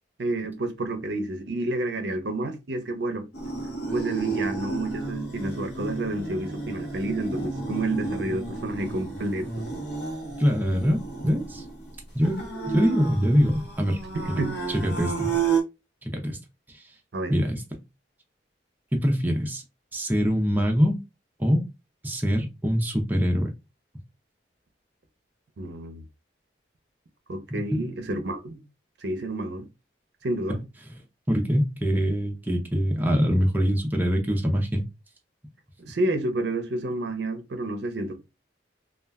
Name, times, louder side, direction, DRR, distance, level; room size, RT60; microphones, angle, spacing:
voice 1, 0.2-3.3 3.9-9.7 14.1-14.6 17.1-17.3 25.6-26.0 27.3-28.6 29.0-29.7 30.2-30.6 35.8-38.2, right 2 dB, 65° right, 0.5 m, -30 dB
sound 1, 3.3-15.6, right 4 dB, 65° left, 0.9 m, -32 dB
voice 2, 10.3-11.7 12.1-12.4 12.7-14.0 14.3-14.4 14.7-15.3 16.0-16.4 16.7-16.9 17.3-17.8 18.9-19.6 19.9-21.0 21.4-21.6 22.0-23.5 27.5-27.9 30.5-30.6 31.3-34.8 35.9-36.0, equal, 10° right, 0.4 m, -24 dB
2.3 x 2.1 x 3.4 m
head